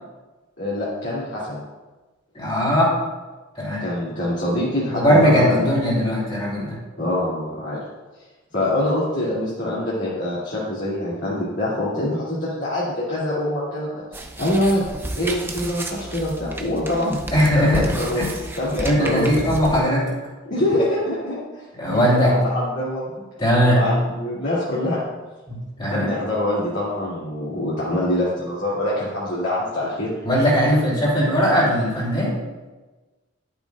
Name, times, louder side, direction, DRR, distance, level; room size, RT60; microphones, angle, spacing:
voice 1, 0.6-1.6 3.8-5.7 7.0-7.8 8.5-14.9 15.2-17.2 17.5-18.2 18.6-19.7 20.5-21.4 21.9-23.1 23.7-25.0 25.9-30.1, left 1 dB, 60° left, -10 dB, 2.6 m, -24 dB
voice 2, 2.3-2.9 3.5-3.8 4.9-6.8 17.3-17.9 18.1-18.3 18.8-20.0 21.7-22.3 23.4-23.8 25.5-26.1 30.2-32.3, equal, 25° left, -7 dB, 2.9 m, -19 dB
sound 1, 14.1-19.8, right 1 dB, 10° right, 0.6 m, -32 dB
11.0 x 8.7 x 2.4 m, 1.2 s
head